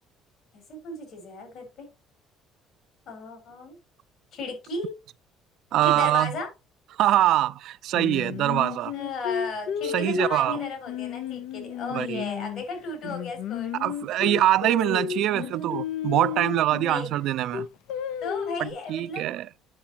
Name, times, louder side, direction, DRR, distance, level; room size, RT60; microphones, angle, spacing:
voice 1, 0.7-1.9 3.1-3.8 4.3-4.9 5.8-6.5 8.9-13.8 15.3-15.7 16.8-17.2 18.2-19.4, left 3 dB, 65° left, 4.6 m, -35 dB
voice 2, 5.7-6.3 7.0-8.9 9.8-10.6 11.9-12.2 13.8-17.7 18.6-19.5, right 13 dB, 65° right, 0.3 m, -24 dB
Singing, 7.9-12.6 13.0-17.0 17.5-18.7, left 9 dB, 85° left, 0.6 m, -32 dB
8.4 x 5.8 x 2.9 m
cardioid pair, 105°, 0 cm